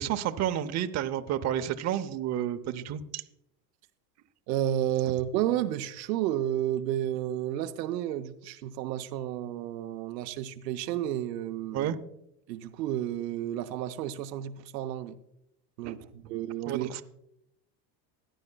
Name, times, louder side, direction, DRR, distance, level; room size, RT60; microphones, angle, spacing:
voice 1, 0.0-3.2 11.7-12.0 15.8-16.1 16.7-17.0, right 11 dB, 35° right, 0.7 m, -31 dB
voice 2, 4.5-11.9 12.5-15.2 15.8-16.9, right 12 dB, 85° right, 0.8 m, -31 dB
15.0 x 10.5 x 2.3 m
supercardioid pair, 110°, 49 cm